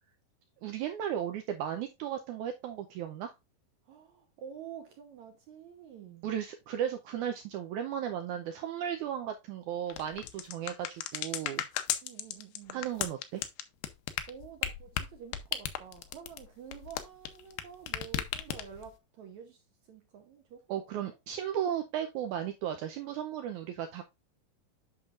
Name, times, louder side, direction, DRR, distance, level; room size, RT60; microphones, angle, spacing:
voice 1, 0.6-3.3 6.2-11.7 12.7-13.4 20.7-24.0, right 10 dB, 85° right, 1.7 m, -35 dB
voice 2, 3.9-6.3 12.0-12.8 14.3-20.7 20.9-21.0, right 8 dB, 70° right, 1.8 m, -49 dB
sound 1, 9.9-17.6 17.9-18.9, left 11 dB, 80° left, 2.3 m, -35 dB
8.9 x 5.8 x 2.4 m
omnidirectional pair, 4.3 m